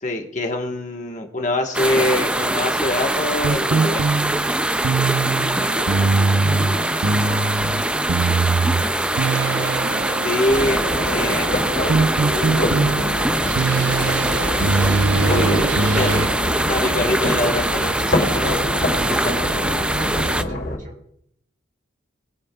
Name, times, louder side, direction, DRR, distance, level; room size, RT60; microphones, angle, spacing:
voice 1, 0.0-4.1 10.2-10.8 11.1-11.5 15.2-15.6 16.0-16.1 16.7-18.3 19.2-19.3, left 1 dB, 35° left, 2 dB, 1.2 m, -23 dB
sound 1, 1.7-20.4, right 1 dB, 5° right, 0.3 m, -23 dB
sound 2, 3.4-16.3, right 4 dB, 80° right, 0.6 m, -22 dB
voice 2, 5.0-6.0 6.4-9.0 9.4-9.8 12.1-13.8 15.1-15.9 19.5-20.9, equal, 40° right, 0 dB, 3.3 m, -34 dB
sound 3, 10.5-20.8, left 1 dB, 65° left, 4.1 m, -25 dB
21.0 x 8.6 x 2.3 m, 0.71 s
head